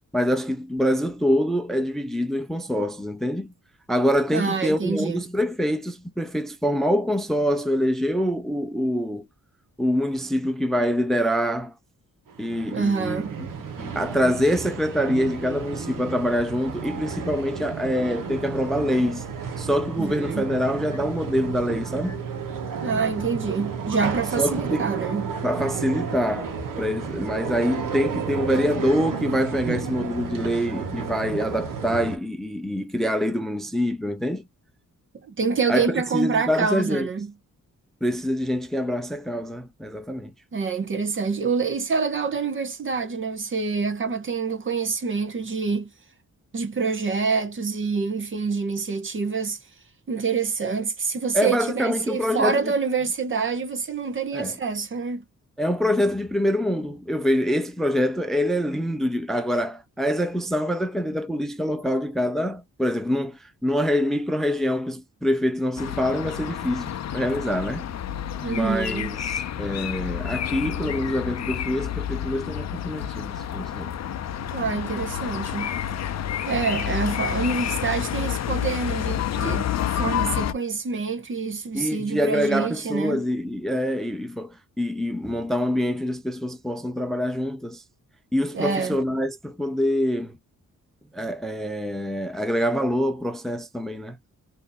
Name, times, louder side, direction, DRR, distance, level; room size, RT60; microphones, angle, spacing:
voice 1, 0.1-3.5 3.9-9.3 9.8-11.7 12.4-13.5 13.8-19.2 19.6-22.3 24.4-24.9 25.4-26.5 26.8-34.4 35.7-37.1 38.0-40.3 51.3-52.7 54.3-54.6 55.6-67.9 68.5-73.9 81.7-87.8 88.3-90.4 91.1-94.2, equal, ahead, 0.5 m, -25 dB
voice 2, 4.3-5.2 12.7-13.4 20.0-20.5 22.8-25.3 35.1-37.3 40.5-45.9 46.5-49.6 50.1-55.2 68.4-69.1 74.5-75.8 76.5-83.2 88.5-89.0, right 5 dB, 40° right, 0.7 m, -26 dB
sound 1, 12.3-32.2, right 6 dB, 85° right, 1.1 m, -32 dB
sound 2, 65.8-80.5, left 10 dB, 55° left, 0.5 m, -29 dB
2.7 x 2.6 x 3.8 m
cardioid pair, 100°, 32 cm